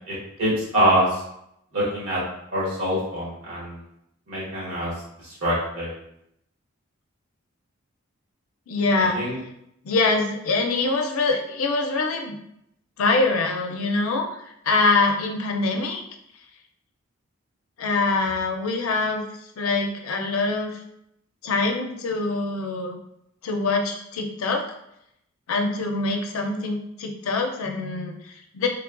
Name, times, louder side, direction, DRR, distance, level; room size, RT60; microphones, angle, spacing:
voice 1, 0.1-1.2 1.7-2.2 2.5-3.8 4.3-4.9 5.2-5.9 9.1-9.4, right 1 dB, 85° right, -6 dB, 1.2 m, -24 dB
voice 2, 8.7-9.2 9.8-12.4 13.0-14.4 14.6-16.0 17.8-19.2 19.6-20.8 21.4-23.0 23.4-24.6 25.5-28.7, left 3 dB, 85° left, 3 dB, 0.4 m, -24 dB
3.1 x 2.2 x 2.4 m, 0.78 s
head